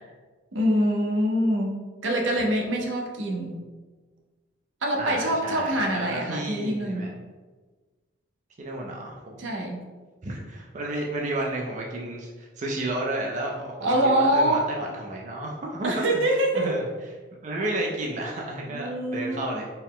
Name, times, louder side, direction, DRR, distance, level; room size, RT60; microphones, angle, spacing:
voice 1, 0.5-3.7 4.8-7.1 9.4-9.8 13.8-14.7 15.8-16.8 18.7-19.5, right 1 dB, 75° right, 0 dB, 0.7 m, -25 dB
voice 2, 5.0-7.1 8.6-9.5 10.2-16.0 16.5-16.8 17.4-19.7, right 1 dB, 40° right, -1 dB, 0.4 m, -32 dB
4.4 x 2.0 x 3.7 m, 1.3 s
head